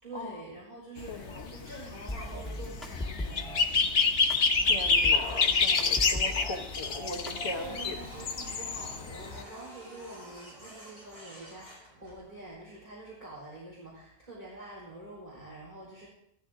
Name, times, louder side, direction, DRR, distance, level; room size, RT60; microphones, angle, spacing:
voice 1, 0.0-3.9 7.4-16.1, right 2 dB, 40° right, -7 dB, 4.1 m, -46 dB
sound 1, 1.0-9.4, left 4 dB, 85° left, 1.3 m, -28 dB
voice 2, 1.1-1.5 4.6-7.9, left 2 dB, 30° left, 0 dB, 1.0 m, -39 dB
sound 2, 2.1-3.6 4.3-6.6 6.9-7.9, left 1 dB, ahead, 1.8 m, -39 dB
Printer, 4.6-12.5, right 1 dB, 75° right, 6.9 m, -50 dB
14.5 x 13.5 x 3.7 m, 0.72 s
omnidirectional pair, 1.1 m